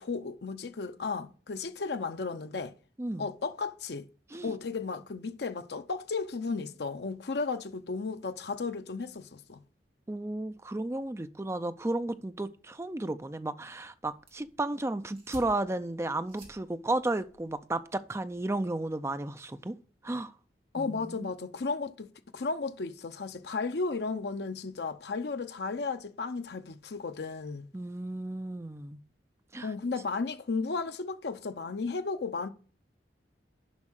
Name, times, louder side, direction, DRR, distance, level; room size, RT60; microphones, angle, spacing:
voice 1, 0.0-2.7 3.2-4.1 4.4-9.6 20.7-27.7 29.6-32.5, left 4 dB, 60° left, 0.6 m, -34 dB
voice 2, 10.1-19.7 20.0-20.3 20.8-21.3 27.7-29.0 29.5-29.7, right 2 dB, 15° right, 0.4 m, -33 dB
sound 1, 14.0-19.0, right 1 dB, 30° right, 2.5 m, -55 dB
7.2 x 5.4 x 6.3 m
head